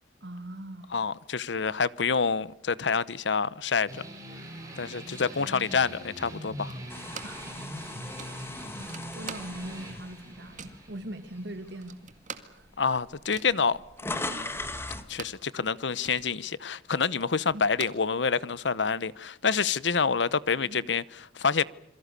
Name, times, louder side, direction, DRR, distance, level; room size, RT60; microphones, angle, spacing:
voice 1, 0.2-1.0 7.2-7.4 9.1-12.7 17.5-17.6 20.6-20.8, right 1 dB, 65° right, 2.4 m, -41 dB
voice 2, 0.9-4.0 4.8-6.7 12.8-14.6 15.1-21.6, left 5 dB, 70° left, 0.9 m, -27 dB
sound 1, 3.9-12.9, right 1 dB, 20° right, 7.5 m, -43 dB
sound 2, 6.7-7.5 7.8-7.9 8.2-9.9 10.1-10.9 11.4-11.5 11.7-15.5 15.8-18.6, right 6 dB, 45° right, 2.0 m, -45 dB
sound 3, 6.9-11.1 11.7-11.9 12.8-12.9 13.1-15.1, left 2 dB, 15° left, 1.9 m, -39 dB
27.5 x 23.0 x 6.8 m
head